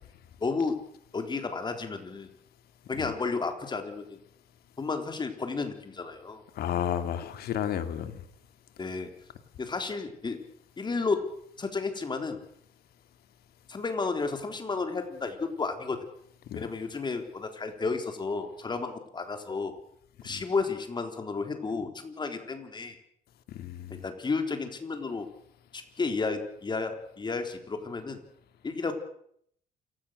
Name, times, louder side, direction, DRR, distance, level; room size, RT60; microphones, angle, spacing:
voice 1, 0.4-0.8 1.1-2.3 2.9-4.2 4.8-6.4 8.8-9.1 9.6-10.4 10.8-11.3 11.6-12.4 13.7-16.0 16.5-19.7 20.2-23.0 23.9-25.3 25.7-28.2 28.6-28.9, left 4 dB, 25° left, 4.0 m, -32 dB
voice 2, 6.6-8.2 16.5-16.6 20.3-20.4 23.5-24.0, left 10 dB, 65° left, 2.5 m, -32 dB
28.0 x 17.0 x 6.6 m
cardioid pair, 110°, 17 cm